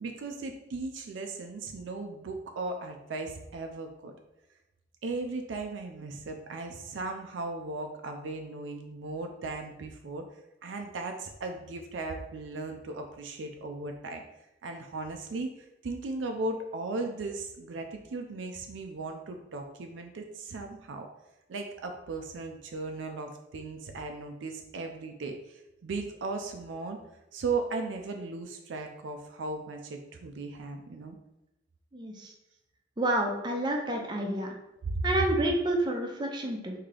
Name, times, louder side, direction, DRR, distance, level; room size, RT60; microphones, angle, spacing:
voice 1, 0.0-4.1 5.0-10.2 10.6-14.2 14.6-15.5 15.8-21.1 21.5-27.0 27.3-31.2 34.9-35.1, right 3 dB, 80° right, 4 dB, 0.4 m, -37 dB
voice 2, 31.9-32.3 33.0-34.5 35.0-36.7, right 1 dB, 25° right, 2 dB, 0.5 m, -29 dB
3.7 x 2.7 x 3.3 m, 0.92 s
head